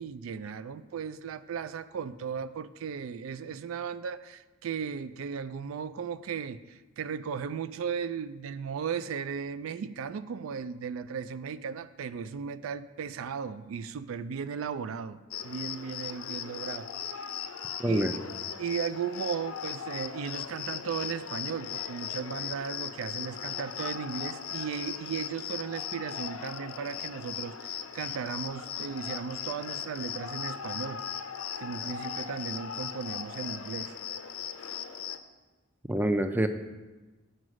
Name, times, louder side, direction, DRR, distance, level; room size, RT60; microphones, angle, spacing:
voice 1, 0.0-15.2 15.4-16.9 17.8-18.0 18.6-31.0 31.6-33.9, right 6 dB, 80° right, 14 dB, 0.3 m, -36 dB
Cricket, 15.3-35.2, left 8 dB, 85° left, 0.5 m, -38 dB
voice 2, 17.8-18.1 35.9-36.5, right 1 dB, 10° right, 8 dB, 0.4 m, -26 dB
7.8 x 4.9 x 6.2 m, 1.2 s
head